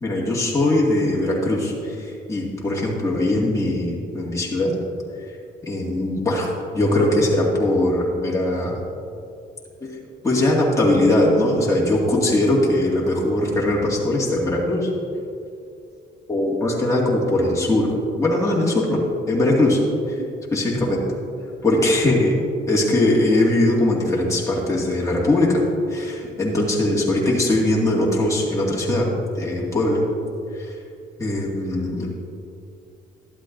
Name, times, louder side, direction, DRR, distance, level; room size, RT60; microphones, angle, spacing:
voice 1, 0.0-4.7 5.6-8.8 9.8-10.0 10.2-14.9 16.3-17.9 18.2-19.0 19.3-19.8 20.2-20.3 20.5-21.0 21.6-22.3 22.7-25.6 25.9-29.1 29.4-30.0 30.5-30.7 31.2-32.1, left 1 dB, 15° left, -5 dB, 2.1 m, -20 dB
12.5 x 12.0 x 2.6 m, 2.6 s
cardioid pair, 90°, 20 cm